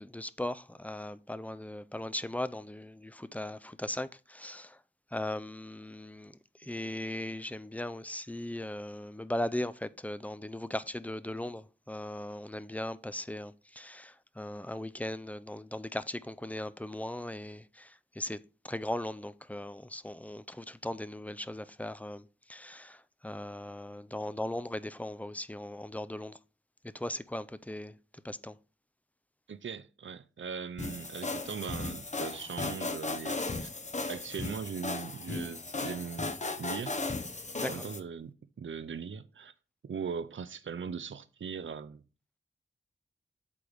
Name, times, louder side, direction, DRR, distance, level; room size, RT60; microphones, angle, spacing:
voice 1, 0.0-4.8 5.1-6.3 6.6-18.4 18.6-22.2 22.5-26.4 26.9-27.9 28.2-28.5 37.6-37.7, left 1 dB, 5° left, 0.5 m, -38 dB
voice 2, 29.5-33.7 34.1-36.3 36.6-37.0 37.7-39.5 39.8-42.0, right 6 dB, 75° right, 0.5 m, -40 dB
sound 1, 30.8-38.0, left 3 dB, 35° left, 0.8 m, -36 dB
8.5 x 3.4 x 6.2 m
wide cardioid pair, 65°, 20 cm